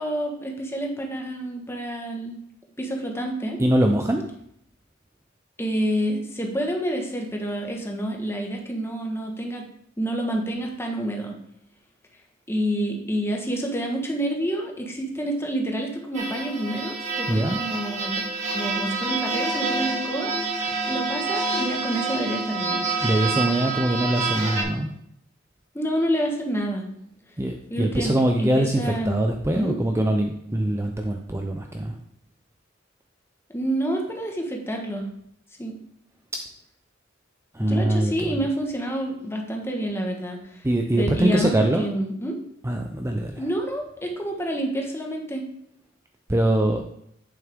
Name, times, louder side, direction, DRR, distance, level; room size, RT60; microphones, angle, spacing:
voice 1, 0.0-2.4 2.8-3.6 5.6-9.7 10.0-11.4 12.5-18.2 18.5-22.8 25.7-26.9 27.7-29.2 29.5-29.7 33.5-35.1 35.6-35.8 37.6-40.6 41.0-42.4 43.4-45.4, right 1 dB, 15° left, 1 dB, 1.4 m, -28 dB
voice 2, 3.6-4.2 17.3-17.6 23.0-24.9 27.4-31.9 36.3-36.4 37.5-38.5 40.6-41.9 42.6-43.5 46.3-46.8, right 1 dB, 15° right, 3 dB, 0.6 m, -23 dB
sound 1, 16.1-24.6, right 3 dB, 40° right, 2.3 m, -27 dB
8.7 x 7.2 x 3.6 m, 0.71 s
head